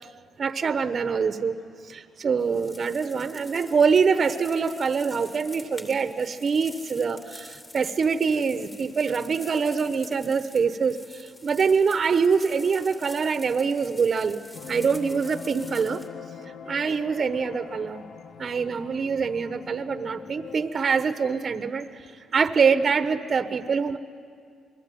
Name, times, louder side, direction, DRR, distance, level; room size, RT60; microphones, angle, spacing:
voice 1, 0.4-1.6 1.9-14.4 14.7-16.0 16.7-18.1 18.4-22.0 22.3-24.0, right 5 dB, 45° right, 10 dB, 1.1 m, -24 dB
sound 1, 2.4-16.1, left 1 dB, 20° left, 2.9 m, -47 dB
sound 2, 14.5-20.7, left 7 dB, 65° left, 1.0 m, -42 dB
27.0 x 21.0 x 9.3 m, 2.2 s
cardioid pair, 90°, 0 cm